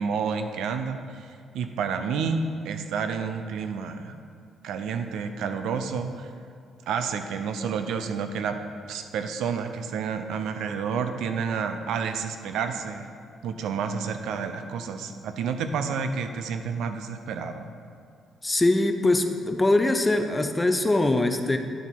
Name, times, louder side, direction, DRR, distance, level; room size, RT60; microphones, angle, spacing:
voice 1, 0.0-4.2 4.6-6.3 6.9-8.6 8.9-13.1 13.4-17.7, right 6 dB, 80° right, 8 dB, 0.5 m, -30 dB
voice 2, 18.4-21.6, left 2 dB, 15° left, 7 dB, 0.5 m, -22 dB
10.5 x 4.0 x 4.5 m, 2.3 s
cardioid pair, 90°, 0 cm